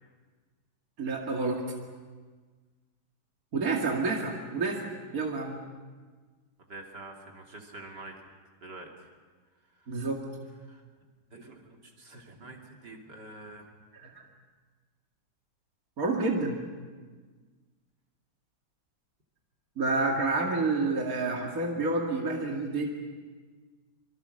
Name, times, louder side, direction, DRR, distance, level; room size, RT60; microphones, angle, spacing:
voice 1, 1.0-1.6 3.5-5.6 9.9-10.2 14.0-14.2 16.0-16.6 19.8-22.9, right 3 dB, 55° right, 0 dB, 2.7 m, -29 dB
voice 2, 6.6-8.1 8.6-9.1 9.7-10.0 10.6-10.8 11.3-13.7 20.4-20.5, right 2 dB, 70° right, 1 dB, 3.4 m, -47 dB
26.5 x 24.0 x 6.5 m, 1.4 s
omnidirectional pair, 1.9 m